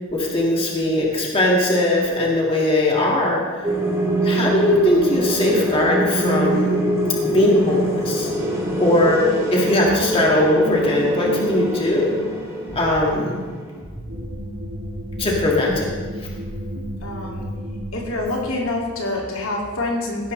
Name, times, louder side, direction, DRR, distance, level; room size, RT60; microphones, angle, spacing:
voice 1, 0.1-3.4 4.2-6.8 7.2-8.3 8.8-9.2 9.5-12.2 12.7-13.4 15.2-15.9, left 1 dB, 25° left, -2 dB, 1.9 m, -19 dB
sound 1, 3.6-13.8, right 1 dB, 15° right, 2.9 m, -24 dB
voice 2, 12.7-13.3 14.1-14.3 17.0-17.5 17.9-20.3, left 2 dB, 70° left, -1 dB, 2.4 m, -27 dB
sound 2, 14.1-18.7, equal, 70° right, 1.5 m, -32 dB
16.0 x 11.5 x 3.2 m, 1.5 s
head